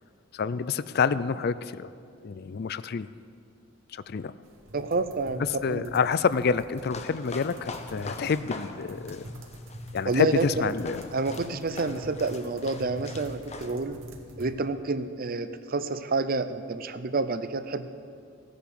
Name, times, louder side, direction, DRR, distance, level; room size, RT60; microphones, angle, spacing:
voice 1, 0.3-1.9 2.2-3.1 3.9-4.3 5.6-9.2 9.9-11.1, left 5 dB, 50° left, 15 dB, 0.4 m, -28 dB
sound 1, 4.4-14.5, equal, 80° right, 1.8 m, -44 dB
voice 2, 4.7-5.9 10.1-10.7 11.1-14.0 14.4-17.9, right 3 dB, 45° right, 11 dB, 0.7 m, -29 dB
sound 2, 6.8-13.7, left 3 dB, 35° left, 0.9 m, -43 dB
15.5 x 10.5 x 7.0 m, 2.4 s
head